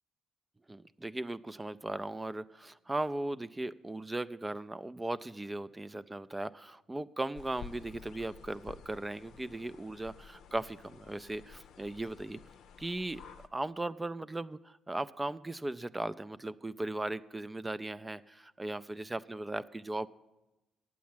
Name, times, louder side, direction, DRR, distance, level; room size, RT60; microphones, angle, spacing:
voice 1, 0.7-12.4 12.8-13.2 13.5-20.1, right 2 dB, 20° right, 14 dB, 0.4 m, -37 dB
sound 1, 7.3-13.5, left 6 dB, 75° left, 0.6 m, -52 dB
9.2 x 7.2 x 8.6 m, 1.0 s
supercardioid pair, 55°, 0 cm